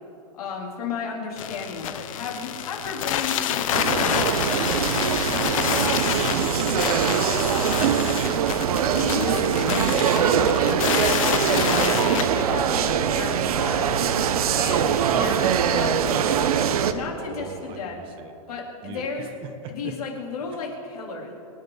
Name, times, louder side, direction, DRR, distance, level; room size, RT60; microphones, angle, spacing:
voice 1, 0.3-4.4 8.9-14.0 14.5-16.4 16.9-18.0 18.5-19.3 19.7-21.3, left 5 dB, 85° left, -1 dB, 3.8 m, -33 dB
sound 1, 1.4-12.2, left 10 dB, 65° left, 0.9 m, -27 dB
sound 2, 3.7-16.9, right 8 dB, 80° right, 1.0 m, -22 dB
voice 2, 7.7-8.1 17.2-18.4 18.8-19.9, right 5 dB, 30° right, 7 dB, 1.2 m, -41 dB
25.5 x 10.5 x 4.1 m, 2.6 s
supercardioid pair, 155°, 19 cm